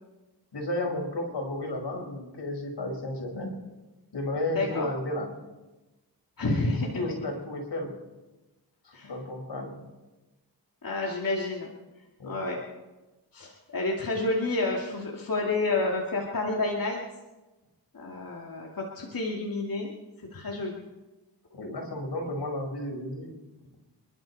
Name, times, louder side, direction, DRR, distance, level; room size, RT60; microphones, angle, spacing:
voice 1, 0.5-3.5 4.1-5.3 6.4-7.9 8.8-9.8 12.2-12.4 21.5-23.3, left 1 dB, 75° left, 1 dB, 5.3 m, -33 dB
voice 2, 4.5-4.9 6.4-7.0 8.9-9.1 10.8-11.7 12.2-12.6 13.3-17.0 17.9-19.9 20.2-20.8, left 2 dB, 55° left, -2 dB, 2.5 m, -29 dB
28.0 x 12.0 x 4.2 m, 1.1 s
cardioid pair, 70°, 41 cm